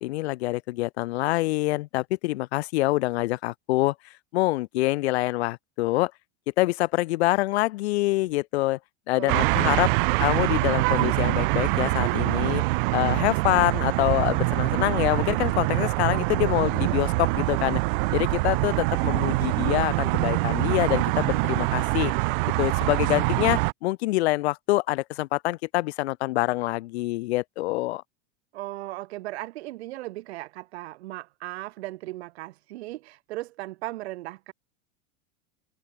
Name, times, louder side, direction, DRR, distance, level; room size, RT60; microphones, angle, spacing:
voice 1, 0.0-3.9 4.3-6.1 6.6-8.8 9.1-9.9 10.2-12.6 12.9-17.8 18.1-22.1 22.6-28.0, left 19 dB, 80° left, 1.3 m, -25 dB
voice 2, 9.1-10.2 28.5-34.5, right 18 dB, 80° right, 3.3 m, -37 dB
sound 1, 9.3-23.7, right 26 dB, 55° right, 0.8 m, -24 dB
supercardioid pair, 170°, 32 cm